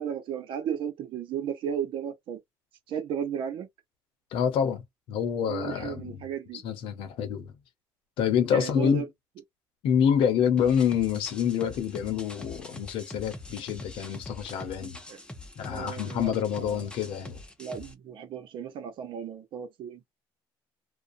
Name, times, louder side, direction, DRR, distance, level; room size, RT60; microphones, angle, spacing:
voice 1, 0.0-2.4 2.9-3.7 5.5-6.6 8.5-9.0 15.1-15.2 15.7-16.8 17.6-20.1, right 8 dB, 65° right, 0.8 m, -34 dB
voice 2, 4.3-6.3 6.6-7.5 8.2-9.0 9.8-15.0 15.6-17.4, left 8 dB, 75° left, 0.8 m, -27 dB
sound 1, 10.6-17.9, left 1 dB, 10° left, 0.8 m, -44 dB
2.5 x 2.2 x 2.6 m
cardioid pair, 95°, 9 cm